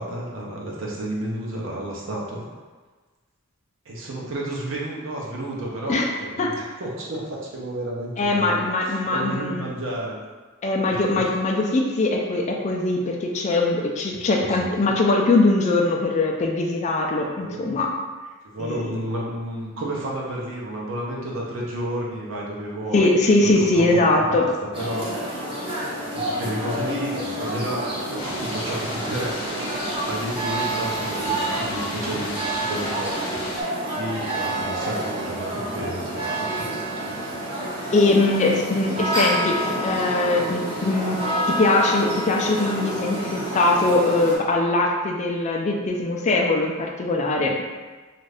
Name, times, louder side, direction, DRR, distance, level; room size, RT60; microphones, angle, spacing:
voice 1, 0.0-2.5 3.9-6.5 6.8-8.6 9.1-10.2 10.9-11.3 14.4-14.7 17.4-17.6 18.4-24.5 24.7-25.1 26.1-29.7 30.0-33.4 33.8-36.9, right 1 dB, 65° right, -3 dB, 0.7 m, -31 dB
voice 2, 8.2-9.7 10.6-17.9 18.6-19.0 22.9-24.5 37.9-41.2 41.5-47.6, left 2 dB, 35° left, 1 dB, 0.3 m, -21 dB
sound 1, 24.7-44.4, right 1 dB, 25° right, 0.6 m, -28 dB
sound 2, 28.2-33.6, left 2 dB, 85° left, 0.6 m, -35 dB
2.6 x 2.5 x 3.3 m, 1.4 s
head